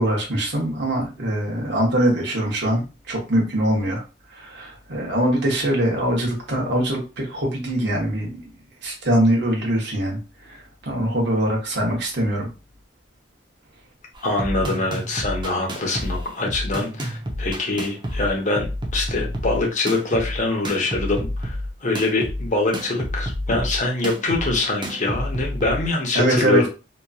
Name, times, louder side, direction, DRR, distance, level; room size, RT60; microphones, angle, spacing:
voice 1, 0.0-4.0 4.3-8.4 8.8-12.5 26.1-26.6, right 1 dB, 65° right, -2 dB, 1.0 m, -22 dB
sound 1, 14.1-25.9, equal, 25° right, 0.5 m, -29 dB
voice 2, 14.2-18.7 18.9-21.6 21.8-26.7, left 2 dB, 40° left, 0 dB, 0.8 m, -24 dB
2.9 x 2.5 x 2.3 m, 0.30 s
head